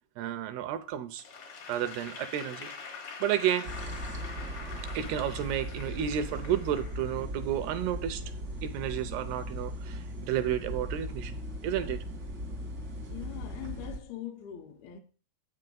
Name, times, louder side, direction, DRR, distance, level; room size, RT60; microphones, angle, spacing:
voice 1, 0.2-1.2 1.7-2.7 3.2-3.7 4.9-8.2 8.6-12.0, right 10 dB, 80° right, 2.4 m, -31 dB
Applause / Crowd, 1.2-7.6, left 5 dB, 60° left, 1.5 m, -45 dB
sound 1, 3.6-14.0, equal, 60° right, 1.1 m, -38 dB
voice 2, 13.1-15.0, left 11 dB, 75° left, 2.4 m, -42 dB
8.1 x 6.7 x 5.3 m
omnidirectional pair, 5.1 m